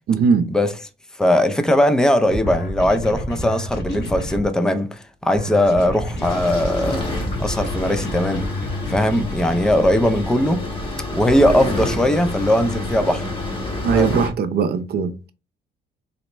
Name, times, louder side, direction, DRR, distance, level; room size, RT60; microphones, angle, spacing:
voice 1, 0.1-0.5 13.8-15.3, right 6 dB, 50° right, 0.5 m, -19 dB
voice 2, 1.2-7.0 7.4-8.4 8.9-10.6 11.2-13.2 13.9-14.2, left 1 dB, 5° left, 0.4 m, -19 dB
sound 1, 2.3-4.5 5.3-10.3, left 1 dB, 65° left, 1.8 m, -30 dB
sound 2, 6.2-14.3, left 2 dB, 25° left, 1.1 m, -28 dB
4.0 x 2.0 x 3.2 m
cardioid pair, 90°, 20 cm